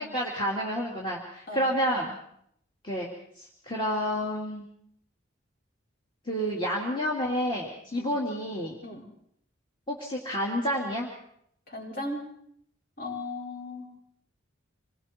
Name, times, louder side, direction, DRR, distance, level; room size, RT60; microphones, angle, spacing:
voice 1, 0.0-2.2 2.8-3.1 3.4-4.6 6.3-8.8 9.9-11.1, equal, 25° left, -2 dB, 2.7 m, -29 dB
voice 2, 11.7-12.3 13.0-13.9, left 2 dB, 50° left, -2 dB, 5.3 m, -37 dB
26.5 x 21.5 x 4.5 m, 0.71 s
head